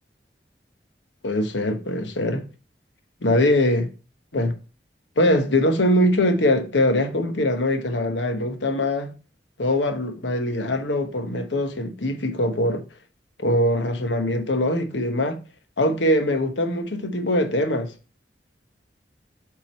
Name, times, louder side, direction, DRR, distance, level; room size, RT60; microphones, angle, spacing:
voice 1, 1.2-2.5 3.2-3.9 4.3-4.5 5.2-9.1 9.6-12.8 13.4-15.4 15.8-17.9, left 1 dB, 85° left, 1.0 m, -22 dB
7.3 x 3.8 x 4.2 m
head